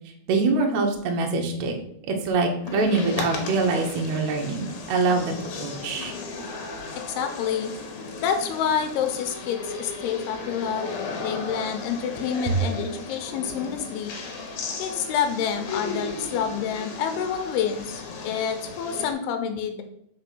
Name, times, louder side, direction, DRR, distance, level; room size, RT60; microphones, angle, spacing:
voice 1, 0.3-1.8 2.1-5.3 5.6-6.1, right 3 dB, 70° right, 2 dB, 1.8 m, -24 dB
sound 1, 2.6-19.1, left 4 dB, 65° left, 2.2 m, -35 dB
voice 2, 7.1-7.7 8.2-10.9 11.2-14.1 14.8-19.8, left 7 dB, 90° left, 6 dB, 2.8 m, -28 dB
5.4 x 4.3 x 5.9 m, 0.75 s
omnidirectional pair, 4.4 m